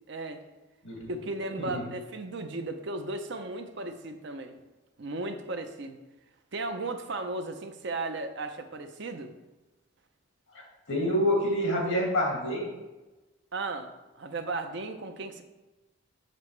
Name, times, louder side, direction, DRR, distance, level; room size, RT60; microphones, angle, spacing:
voice 1, 0.1-0.4 1.1-4.6 5.0-6.0 6.5-9.3 13.5-15.4, right 2 dB, 55° right, 7 dB, 0.6 m, -35 dB
voice 2, 10.9-12.7, equal, 75° left, -1 dB, 2.2 m, -27 dB
6.7 x 6.1 x 3.2 m, 1.1 s
head